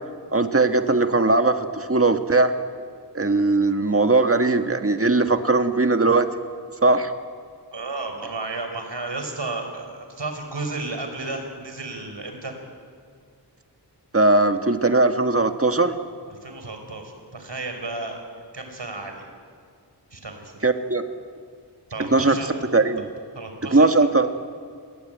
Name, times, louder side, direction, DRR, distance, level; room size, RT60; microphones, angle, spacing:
voice 1, 0.3-2.5 3.1-6.3 6.8-7.1 14.1-15.9 20.6-21.0 22.0-22.4 22.7-23.1 23.7-24.3, right 3 dB, 30° right, 7 dB, 1.6 m, -19 dB
voice 2, 7.7-12.5 16.3-18.2 18.5-19.3 20.1-20.6 21.9-22.8 23.3-24.1, right 3 dB, 85° right, 5 dB, 5.0 m, -33 dB
29.5 x 21.5 x 9.2 m, 2.1 s
wide cardioid pair, 60°, 42 cm